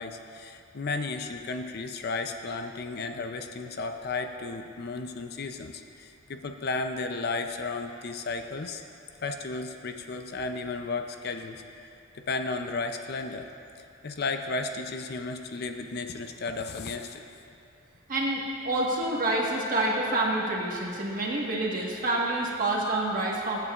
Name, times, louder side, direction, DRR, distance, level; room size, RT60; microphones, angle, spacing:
voice 1, 0.0-8.8 9.2-11.9 12.1-13.5 14.0-17.2, left 3 dB, 50° left, 6 dB, 0.5 m, -34 dB
voice 2, 18.1-23.6, right 2 dB, 40° right, -3 dB, 1.5 m, -27 dB
21.5 x 8.1 x 2.4 m, 2.6 s
head